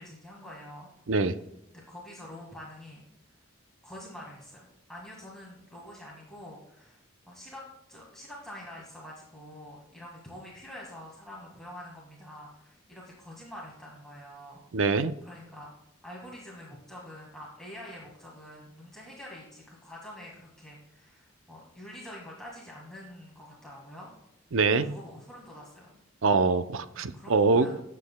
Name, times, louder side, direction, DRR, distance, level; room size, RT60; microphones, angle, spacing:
voice 1, 0.0-0.9 1.7-3.0 3.8-7.0 7.3-14.6 15.2-15.7 16.0-24.1 24.8-26.0 27.1-27.8, left 1 dB, 5° left, -5 dB, 1.7 m, -46 dB
voice 2, 14.7-15.1 24.5-25.0 26.2-27.7, right 4 dB, 75° right, 12 dB, 0.6 m, -24 dB
18.5 x 7.6 x 2.3 m, 0.85 s
head